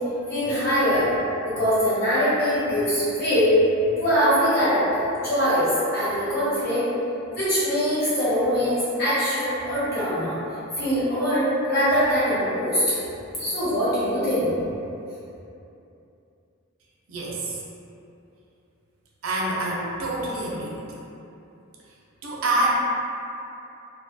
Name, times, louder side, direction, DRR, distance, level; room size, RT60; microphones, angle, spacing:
voice 1, 0.3-1.1 1.4-3.5 4.0-6.8 7.3-10.3 10.8-12.8 13.3-14.5, equal, 45° left, -12 dB, 1.1 m, -22 dB
voice 2, 17.1-17.6 19.2-21.1 22.2-22.7, right 2 dB, 70° right, -4 dB, 0.4 m, -26 dB
2.3 x 2.2 x 2.5 m, 2.8 s
head